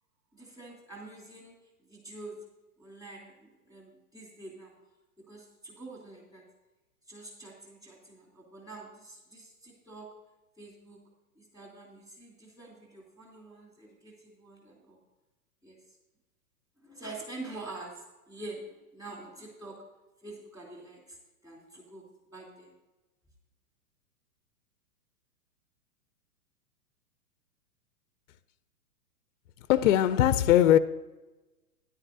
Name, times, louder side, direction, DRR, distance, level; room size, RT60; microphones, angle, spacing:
voice 1, 0.3-1.5 1.8-2.4 2.8-4.7 5.2-6.4 7.1-10.1 10.6-11.0 11.3-15.0 15.6-15.8 16.8-19.8 20.2-21.2 21.4-22.1 22.3-22.7, right 2 dB, 10° right, 3.1 m, -46 dB
voice 2, 29.7-30.8, left 12 dB, 55° left, 0.6 m, -20 dB
13.0 x 10.5 x 2.7 m
figure-of-eight pair, 115°, 45 cm